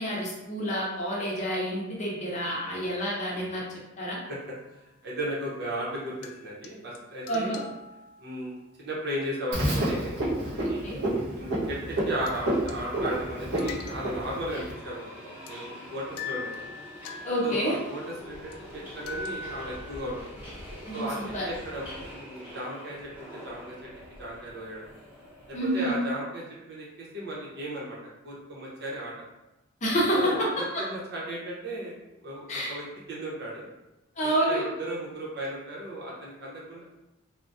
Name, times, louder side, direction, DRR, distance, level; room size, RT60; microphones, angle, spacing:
voice 1, 0.0-3.6 4.0-4.2 7.3-7.6 10.6-11.0 17.2-17.8 20.9-21.5 25.5-26.0 29.8-30.5 32.5-32.8 34.2-34.6, equal, 35° left, -4 dB, 0.7 m, -28 dB
sound 1, 4.3-4.6 6.2-6.7 6.9-7.0 7.2-8.5 12.0-12.1 12.3-13.3 13.6-14.4 14.7-14.8 15.5-15.6 16.2-18.2 18.5-18.6 19.1-20.2, left 4 dB, 90° left, 0.3 m, -42 dB
voice 2, 5.0-6.1 6.4-7.6 8.2-8.5 8.8-10.2 10.6-11.0 11.3-11.8 12.0-16.6 17.4-20.2 20.9-21.2 21.4-23.9 24.2-24.8 25.5-28.0 28.2-29.1 30.1-31.9 32.2-33.7 34.2-36.8, right 1 dB, 50° right, -5 dB, 0.9 m, -36 dB
Frog, 9.5-14.7, right 1 dB, 90° right, 1.4 m, -29 dB
Subway metro underground, 12.3-25.9, equal, 10° right, 0.8 m, -45 dB
3.4 x 2.2 x 2.7 m, 0.98 s
head